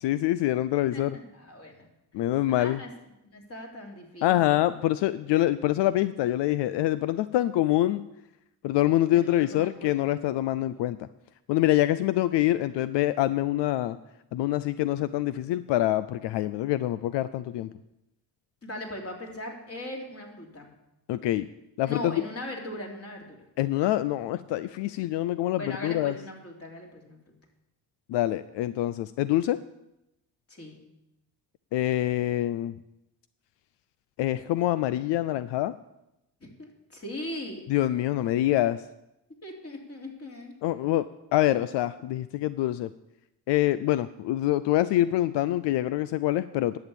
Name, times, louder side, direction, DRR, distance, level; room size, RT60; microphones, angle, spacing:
voice 1, 0.0-1.2 2.1-2.8 4.2-8.0 8.6-11.0 11.5-14.0 14.3-17.7 21.1-21.5 21.8-22.2 23.6-26.1 28.1-29.6 31.7-32.7 34.2-35.7 37.7-38.8 40.6-41.1 41.3-42.9 43.5-46.8, left 14 dB, 80° left, 15 dB, 0.5 m, -25 dB
voice 2, 0.9-1.9 2.6-2.9 3.2-4.6 9.1-10.0 18.6-20.7 21.8-23.4 25.5-27.2 30.5-30.8 36.4-37.7 39.4-40.6, left 1 dB, 35° left, 0 dB, 3.3 m, -39 dB
11.0 x 7.2 x 8.6 m, 0.89 s
cardioid pair, 80°, 42 cm